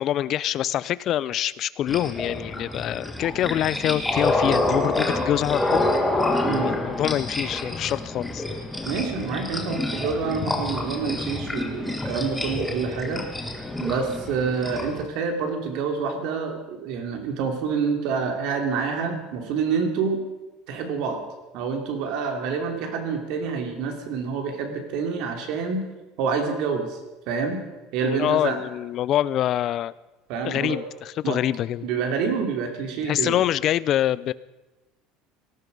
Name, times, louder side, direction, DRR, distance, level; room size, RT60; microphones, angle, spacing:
voice 1, 0.0-5.9 6.6-8.4 28.0-29.9 30.4-31.9 33.0-34.3, left 12 dB, 35° left, 18 dB, 0.5 m, -25 dB
sound 1, 1.9-15.0, left 2 dB, 5° left, 1.5 m, -27 dB
voice 2, 8.8-13.2 13.8-20.2 20.7-21.2 21.5-25.8 26.2-27.0 27.3-27.6 27.9-28.6 30.3-30.8 31.2-31.4 31.8-33.4, right 5 dB, 55° right, 4 dB, 3.0 m, -27 dB
19.0 x 14.0 x 5.3 m, 1.1 s
cardioid pair, 165°, 0 cm